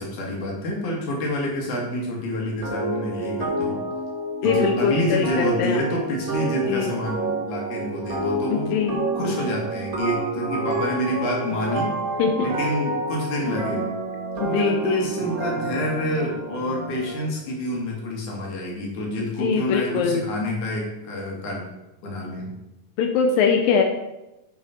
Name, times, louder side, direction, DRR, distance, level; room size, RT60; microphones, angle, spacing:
voice 1, 0.0-3.8 4.4-8.7 9.1-12.0 12.4-13.9 14.4-21.7 22.0-22.5, left 1 dB, 60° left, -2 dB, 3.5 m, -28 dB
sound 1, 2.6-17.2, right 2 dB, 90° right, 0.7 m, -29 dB
voice 2, 4.4-5.8 6.7-6.9 8.5-9.1 12.2-12.5 14.4-15.1 19.4-20.2 23.0-23.8, left 6 dB, 90° left, 4 dB, 2.5 m, -22 dB
8.7 x 7.3 x 4.4 m, 0.95 s
omnidirectional pair, 3.9 m